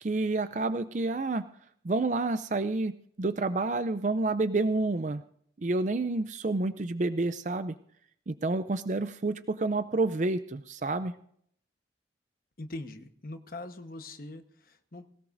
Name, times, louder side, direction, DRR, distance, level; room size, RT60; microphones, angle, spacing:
voice 1, 0.0-1.5 1.8-5.2 5.6-7.7 8.3-11.1, right 2 dB, 40° right, 11 dB, 0.5 m, -29 dB
voice 2, 12.6-15.1, left 2 dB, 50° left, 7 dB, 1.2 m, -42 dB
19.5 x 18.5 x 2.6 m, 0.64 s
head